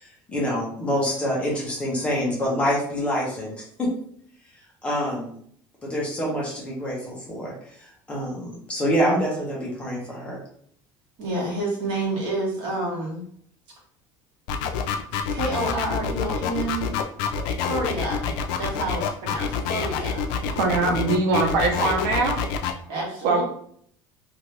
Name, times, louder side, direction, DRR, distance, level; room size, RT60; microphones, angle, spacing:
voice 1, 0.0-3.9 4.8-5.3 5.8-10.4 17.6-17.7 20.9-21.0, equal, 10° left, -5 dB, 0.9 m, -26 dB
voice 2, 11.2-13.2 15.3-16.9 17.6-20.4 22.9-23.4, right 1 dB, 55° right, -3 dB, 1.4 m, -29 dB
sound 1, 14.5-22.7, left 7 dB, 75° left, 0.4 m, -27 dB
voice 3, 20.6-22.4 23.2-23.4, right 3 dB, 90° right, 1 dB, 0.7 m, -22 dB
2.8 x 2.6 x 3.2 m, 0.63 s
cardioid pair, 180°, 10 cm